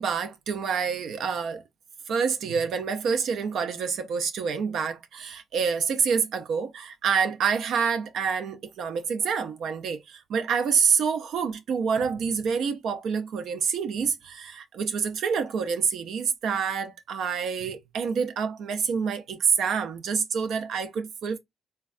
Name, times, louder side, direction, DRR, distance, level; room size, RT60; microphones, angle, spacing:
voice 1, 0.0-1.6 2.1-21.4, right 6 dB, 70° right, 0.3 m, -27 dB
3.3 x 2.2 x 2.3 m
cardioid pair, 90°, 0 cm